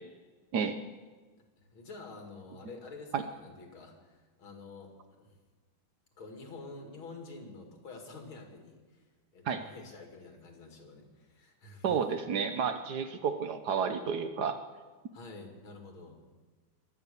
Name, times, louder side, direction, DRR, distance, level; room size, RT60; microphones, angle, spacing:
voice 1, 1.6-4.9 5.2-5.4 6.2-9.1 9.3-12.0 15.1-16.2, left 3 dB, 80° left, 3 dB, 3.2 m, -48 dB
voice 2, 11.8-14.6, right 6 dB, 60° right, 8 dB, 1.2 m, -31 dB
22.0 x 8.9 x 6.9 m, 1.3 s
omnidirectional pair, 2.2 m